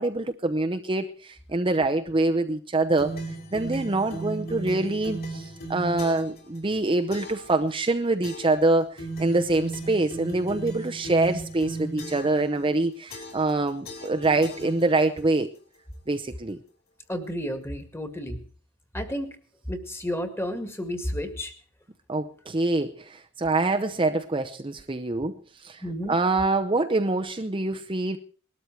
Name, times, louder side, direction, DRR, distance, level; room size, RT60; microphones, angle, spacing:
voice 1, 0.0-3.1 3.5-15.5 16.1-16.6 22.1-25.3 25.6-25.8 26.1-28.2, right 2 dB, 25° right, 0.8 m, -25 dB
sound 1, 3.0-6.4 7.1-7.5 8.2-8.6 9.0-12.4 13.1-13.5 13.8-15.2, right 2 dB, 45° left, 4.9 m, -36 dB
voice 2, 17.1-18.4 18.9-19.3 19.7-21.5 25.8-26.1, equal, 10° left, 2.0 m, -31 dB
20.0 x 13.0 x 4.6 m
head